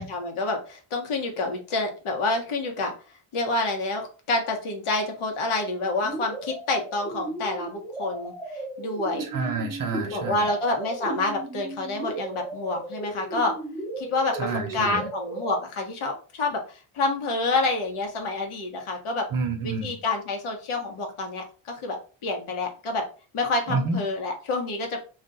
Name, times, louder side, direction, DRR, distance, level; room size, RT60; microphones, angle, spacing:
voice 1, 0.0-2.9 3.3-9.2 10.1-13.5 14.0-19.3 19.6-22.0 22.2-23.0 23.3-25.0, left 2 dB, 80° left, 3 dB, 1.0 m, -28 dB
sound 1, 6.0-15.6, right 2 dB, ahead, 0.5 m, -35 dB
voice 2, 9.2-10.5 14.4-15.0 19.3-20.0 23.7-24.0, right 4 dB, 40° right, 4 dB, 0.7 m, -29 dB
2.5 x 2.2 x 3.8 m, 0.36 s
cardioid pair, 135°, 50 cm